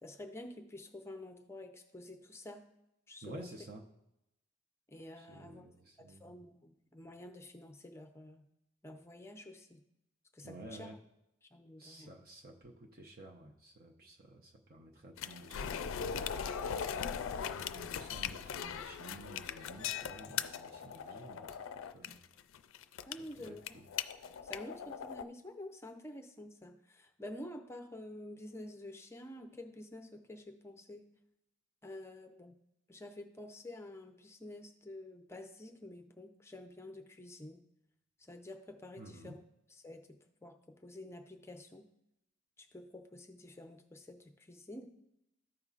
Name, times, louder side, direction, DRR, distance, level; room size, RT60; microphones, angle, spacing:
voice 1, 0.0-2.6 3.1-3.5 4.9-5.7 6.1-8.4 8.8-9.8 10.3-11.0 11.4-12.1 17.4-17.6 22.0-22.2 23.1-23.8 24.4-31.1 31.8-32.5 32.9-37.6 38.3-39.4 39.7-41.9 42.6-44.9, left 1 dB, 15° left, 5 dB, 0.5 m, -49 dB
voice 2, 3.2-3.9 5.2-6.3 10.4-11.0 11.8-16.8 17.4-22.2 23.4-23.9 39.0-39.4, right 2 dB, 50° right, 1 dB, 0.7 m, -52 dB
sound 1, 15.2-25.2, left 8 dB, 85° left, 0.4 m, -40 dB
14.0 x 5.3 x 2.4 m, 0.87 s
head